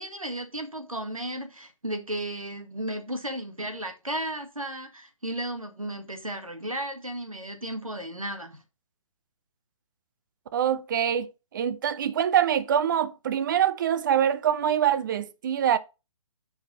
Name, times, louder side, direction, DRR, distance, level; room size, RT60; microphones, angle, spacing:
voice 1, 0.0-8.6, right 1 dB, 85° right, 1.7 m, -34 dB
voice 2, 10.5-15.8, right 9 dB, 35° right, 0.7 m, -24 dB
8.8 x 4.8 x 4.1 m
figure-of-eight pair, 130°, 17 cm